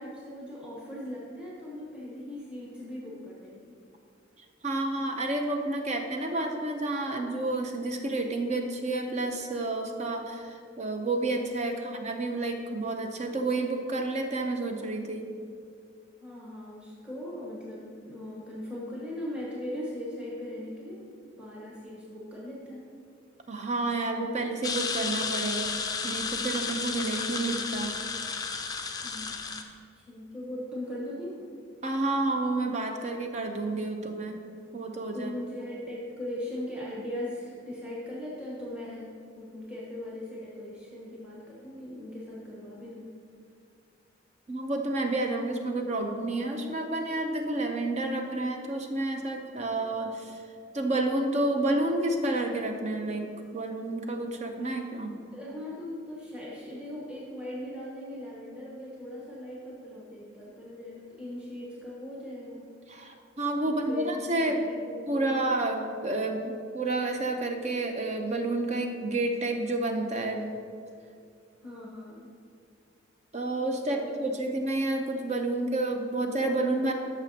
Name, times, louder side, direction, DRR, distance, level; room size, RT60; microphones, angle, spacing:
voice 1, 0.0-3.7 11.7-11.9 16.2-22.9 29.0-29.5 30.0-31.5 35.1-43.1 55.3-62.7 63.6-65.3 70.4-70.5 71.6-72.3 73.8-74.1, left 1 dB, 5° right, -6 dB, 1.1 m, -39 dB
voice 2, 4.6-15.3 23.5-27.9 31.8-34.4 34.7-35.3 44.5-50.4 50.7-53.2 53.5-55.1 62.9-64.7 65.1-70.6 73.3-76.9, right 2 dB, 35° right, 4 dB, 0.7 m, -30 dB
sound 1, 24.6-29.6, left 4 dB, 20° left, 0.5 m, -32 dB
13.5 x 6.2 x 2.8 m, 2.4 s
head